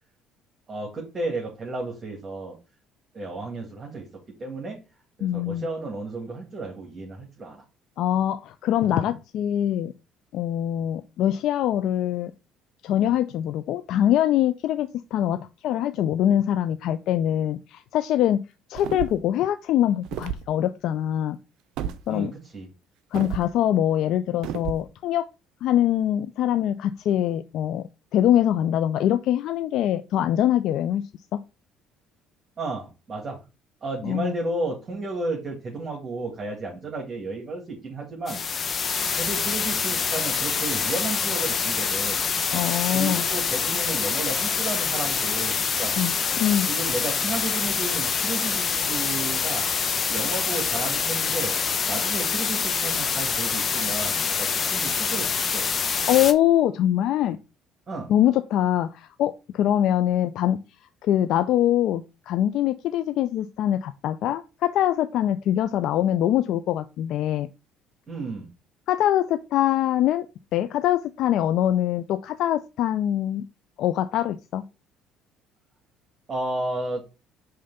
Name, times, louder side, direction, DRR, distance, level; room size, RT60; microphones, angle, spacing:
voice 1, 0.7-2.6 3.1-4.1 4.4-4.8 5.2-7.6 22.1-22.7 32.6-33.4 33.8-38.4 39.1-42.2 42.9-46.0 46.6-49.7 50.1-51.6 51.8-55.7 57.9-58.1 68.1-68.5 76.3-77.0, right 2 dB, 35° right, -1 dB, 2.1 m, -33 dB
voice 2, 5.2-5.7 8.0-9.9 10.3-12.3 12.8-18.4 18.7-21.4 22.1-22.3 23.1-25.2 25.6-27.9 28.1-31.1 34.0-34.3 42.5-43.3 46.0-46.7 56.1-57.4 58.1-60.6 61.0-67.5 68.9-70.3 70.5-73.5 73.8-74.6, left 11 dB, 65° left, 10 dB, 0.4 m, -23 dB
sound 1, 18.7-19.3 20.0-20.5 21.8-22.0 23.1-23.5 24.4-24.8, right 10 dB, 70° right, 0.5 m, -31 dB
sound 2, 38.3-56.3, left 6 dB, 40° left, 0.8 m, -26 dB
5.1 x 3.3 x 5.4 m, 0.29 s
supercardioid pair, 75°, 0 cm